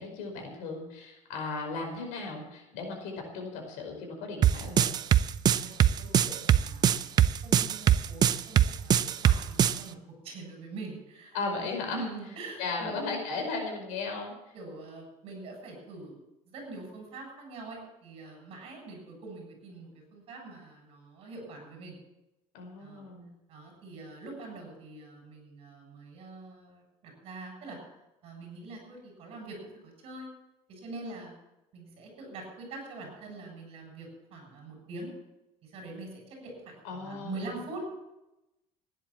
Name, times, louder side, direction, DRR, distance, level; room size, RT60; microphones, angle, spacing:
voice 1, 0.0-4.9 11.3-12.0 12.6-14.3 22.5-23.3 36.8-37.6, left 3 dB, 75° left, 2 dB, 5.1 m, -36 dB
sound 1, 4.4-9.8, right 10 dB, 30° right, 0.5 m, -22 dB
voice 2, 5.5-10.0 10.2-11.4 11.6-13.2 14.5-16.2 16.5-22.0 22.8-23.1 23.5-27.8 28.2-30.3 30.7-31.3 31.7-35.1 35.6-38.0, right 2 dB, 45° right, 2 dB, 7.6 m, -44 dB
16.0 x 10.5 x 7.5 m, 0.95 s
cardioid pair, 160°, 13 cm